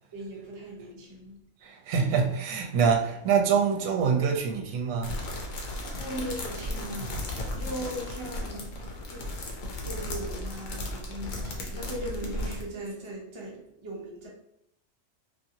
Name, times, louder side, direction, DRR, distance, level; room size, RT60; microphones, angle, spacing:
voice 1, 0.1-1.7 5.9-9.6 9.8-14.3, right 1 dB, 40° right, 0.4 m, -39 dB
voice 2, 1.6-5.2 7.0-7.1 7.6-7.7, right 6 dB, 75° right, 0.9 m, -25 dB
sound 1, 5.0-12.6, left 1 dB, 75° left, 1.0 m, -35 dB
2.6 x 2.6 x 2.7 m
omnidirectional pair, 1.4 m